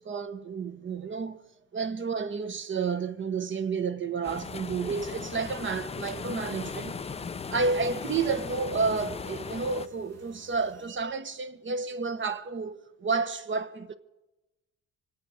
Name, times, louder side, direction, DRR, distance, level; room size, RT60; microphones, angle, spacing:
voice 1, 0.0-1.4 1.7-6.9 7.5-13.9, right 4 dB, 40° right, 1.2 m, -31 dB
sound 1, 4.2-9.9, left 5 dB, 20° left, 0.4 m, -38 dB
sound 2, 4.9-10.9, right 1 dB, 55° right, 2.4 m, -52 dB
25.0 x 8.8 x 6.3 m
cardioid pair, 90°, 30 cm